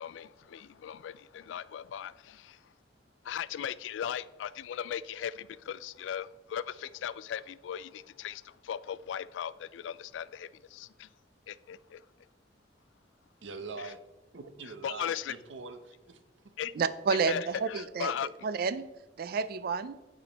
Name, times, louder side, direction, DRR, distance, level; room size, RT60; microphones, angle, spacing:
voice 1, 0.0-2.6 3.2-11.1 11.5-12.0 13.8-13.9 14.8-15.3 16.6-16.7 17.1-18.3, left 9 dB, 80° left, 0.3 m, -38 dB
voice 2, 13.4-14.0 14.3-16.2, right 4 dB, 80° right, 0.8 m, -43 dB
voice 3, 16.8-18.1 18.4-18.9 19.2-20.0, right 5 dB, 55° right, 0.4 m, -30 dB
8.8 x 5.0 x 4.0 m
head